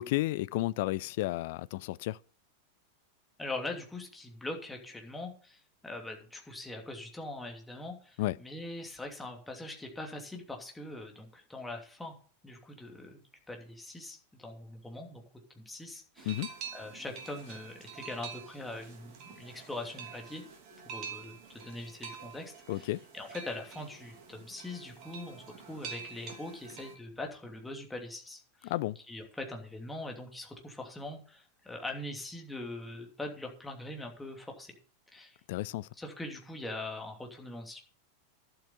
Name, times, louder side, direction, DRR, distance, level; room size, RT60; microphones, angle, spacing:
voice 1, 0.0-2.2 8.2-8.4 16.3-16.5 22.7-23.0 28.6-29.0 35.5-35.9, left 17 dB, 50° left, 0.4 m, -32 dB
voice 2, 3.4-12.1 12.4-15.2 15.5-16.3 16.7-20.4 20.8-28.7 29.1-34.7 35.1-35.4 35.9-37.8, left 2 dB, 5° left, 2.8 m, -42 dB
sound 1, 16.2-27.0, right 6 dB, 40° right, 3.1 m, -47 dB
11.5 x 7.9 x 5.7 m
figure-of-eight pair, 90°, 0 cm